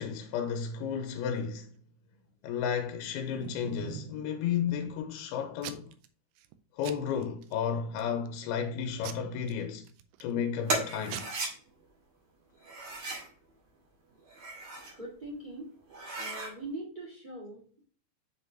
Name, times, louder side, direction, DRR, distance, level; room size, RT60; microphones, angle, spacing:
voice 1, 0.0-1.7 2.4-5.9 6.8-9.9 10.2-11.3, left 7 dB, 90° left, 2.6 m, -33 dB
Packing tape duct tape / Tearing, 2.8-4.2 4.7-5.2 5.6-6.1 6.4-6.6 6.8-7.5 8.0-8.4 9.0-10.3 10.8-10.9 11.1-11.2, right 11 dB, 90° right, 2.6 m, -44 dB
sound 1, 10.7-11.5 12.6-13.3 14.2-15.0 15.4-15.5 15.9-16.5, right 2 dB, 45° right, 2.8 m, -35 dB
voice 2, 14.9-15.7 16.2-17.8, right 1 dB, 25° right, 1.0 m, -42 dB
6.7 x 5.2 x 2.8 m
omnidirectional pair, 4.4 m